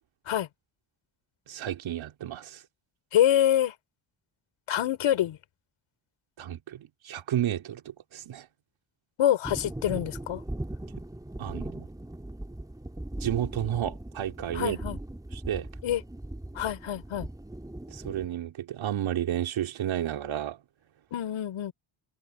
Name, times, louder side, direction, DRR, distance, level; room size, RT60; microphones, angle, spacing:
voice 1, 1.5-2.6 6.4-8.5 11.4-11.9 13.2-14.8 15.3-15.7 17.9-20.6, right 11 dB, 75° right, 3.2 m, -32 dB
voice 2, 3.1-3.7 4.7-5.4 9.2-10.4 14.5-15.0 15.8-16.0 16.5-17.3 21.1-21.7, left 11 dB, 85° left, 5.1 m, -26 dB
sound 1, 9.4-18.3, right 1 dB, 10° right, 4.5 m, -39 dB
cardioid pair, 125°, 47 cm